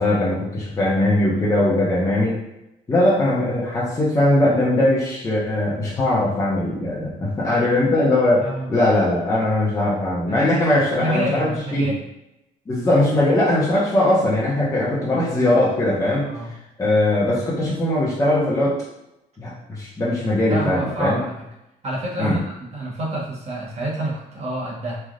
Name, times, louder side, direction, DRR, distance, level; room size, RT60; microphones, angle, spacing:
voice 1, 0.0-2.4 2.9-11.9 12.7-16.3 16.8-18.8 19.4-21.2 22.2-22.4, left 1 dB, 20° left, -7 dB, 0.7 m, -20 dB
voice 2, 8.4-8.7 10.3-11.9 16.2-16.5 20.5-21.5 21.8-25.0, right 1 dB, 40° right, -5 dB, 1.0 m, -28 dB
3.2 x 2.4 x 2.5 m, 0.90 s
cardioid pair, 110°, 17 cm